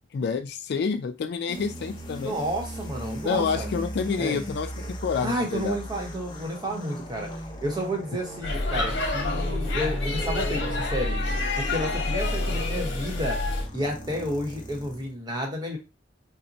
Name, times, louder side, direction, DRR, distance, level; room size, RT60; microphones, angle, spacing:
voice 1, 0.1-2.4 3.2-5.8, left 5 dB, 60° left, 8 dB, 0.3 m, -28 dB
sound 1, 1.5-15.1, equal, 25° left, 0.6 m, -38 dB
voice 2, 2.2-3.7 4.2-4.4 5.2-7.3 7.6-11.2 11.6-13.4 13.7-15.8, equal, 25° right, 1 dB, 0.9 m, -31 dB
Speech / Shout / Subway metro underground, 8.4-13.7, left 2 dB, 80° left, 0.9 m, -27 dB
4.0 x 2.1 x 2.6 m, 0.27 s
head